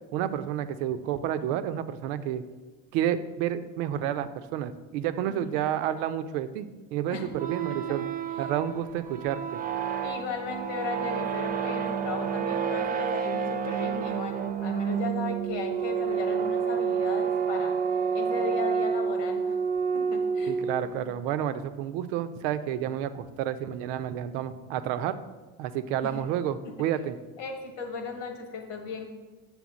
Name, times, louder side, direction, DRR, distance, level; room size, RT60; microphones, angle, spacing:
voice 1, 0.1-2.4 2.9-8.1 8.4-9.6 20.5-25.1 25.6-27.2, right 10 dB, 85° right, 11 dB, 0.6 m, -30 dB
sound 1, 7.3-21.1, right 6 dB, 25° right, 0.4 m, -29 dB
voice 2, 10.0-17.8 18.1-19.5 19.9-20.6 26.0-26.1 27.4-29.1, left 4 dB, 85° left, 3 dB, 1.5 m, -36 dB
7.2 x 3.4 x 6.2 m, 1.3 s
supercardioid pair, 105°, 38 cm